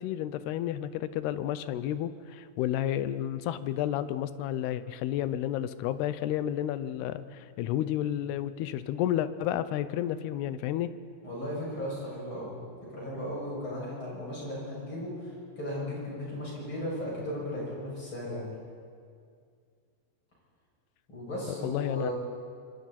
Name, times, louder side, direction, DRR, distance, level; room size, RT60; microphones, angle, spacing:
voice 1, 0.0-10.9 21.6-22.1, left 11 dB, 85° left, 13 dB, 2.7 m, -31 dB
voice 2, 11.2-12.6 12.9-18.5 21.1-22.1, left 1 dB, 30° left, -5 dB, 7.6 m, -36 dB
25.5 x 24.5 x 4.2 m, 2.2 s
omnidirectional pair, 4.7 m